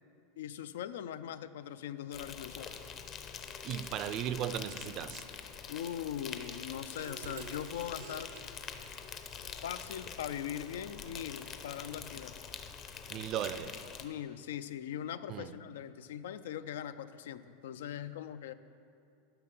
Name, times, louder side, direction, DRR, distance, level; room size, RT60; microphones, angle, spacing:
voice 1, 0.4-2.8 5.7-8.3 9.6-12.3 14.0-18.5, left 10 dB, 85° left, 0.4 m, -41 dB
Insect, 2.1-14.0, left 7 dB, 30° left, 0.6 m, -45 dB
voice 2, 3.6-5.2 13.1-13.8 15.3-15.5, right 10 dB, 35° right, 0.4 m, -36 dB
sound 1, 6.6-8.4 11.1-11.3 11.8-12.6, right 8 dB, 80° right, 0.7 m, -50 dB
11.0 x 5.7 x 6.0 m
supercardioid pair, 150°, 0 cm